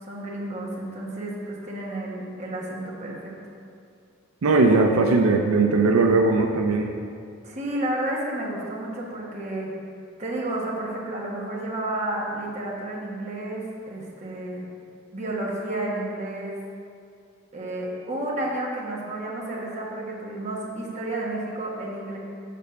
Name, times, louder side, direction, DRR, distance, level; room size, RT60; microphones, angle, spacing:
voice 1, 0.0-3.3 7.4-9.7 10.2-14.7 15.1-16.6 17.5-22.2, right 1 dB, 35° right, -4 dB, 1.3 m, -31 dB
voice 2, 4.4-6.9, right 3 dB, 80° right, 3 dB, 0.5 m, -19 dB
6.8 x 4.2 x 6.6 m, 2.3 s
head